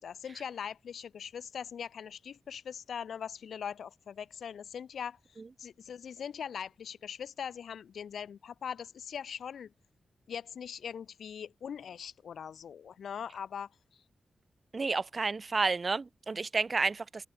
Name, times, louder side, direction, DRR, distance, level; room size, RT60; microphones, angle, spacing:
voice 1, 0.0-9.7 10.3-14.0, left 7 dB, 80° left, 7.6 m, -41 dB
voice 2, 14.7-17.3, right 4 dB, 35° right, 3.0 m, -31 dB
open air
wide cardioid pair, 130°, 0 cm